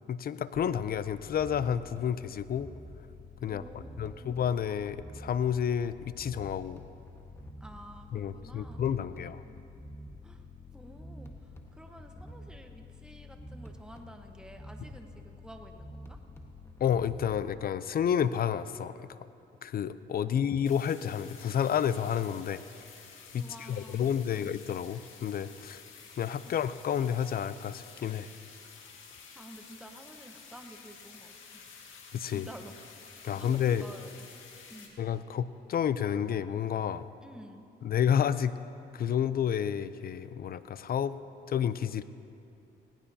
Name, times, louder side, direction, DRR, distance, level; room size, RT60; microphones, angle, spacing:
voice 1, 0.1-2.7 3.4-3.6 4.0-6.8 8.1-9.4 16.8-19.2 19.6-22.6 23.3-25.8 26.2-28.3 32.1-32.5 33.2-33.9 35.0-37.1 37.8-38.6 38.9-41.2 41.5-42.0, left 8 dB, 50° left, 14 dB, 0.5 m, -30 dB
sound 1, 0.5-17.6, left 1 dB, 15° left, 1.4 m, -48 dB
voice 2, 3.5-4.4 7.6-9.3 10.2-10.5 10.7-16.2 20.3-20.5 23.4-24.5 26.4-26.6 29.3-31.7 32.2-32.7 33.3-34.3 34.7-35.0 37.2-37.6, right 1 dB, 5° right, 4 dB, 1.1 m, -51 dB
sound 2, 20.6-34.9, left 5 dB, 85° left, 1.9 m, -51 dB
19.0 x 18.0 x 2.8 m, 2.7 s
cardioid pair, 90°, 20 cm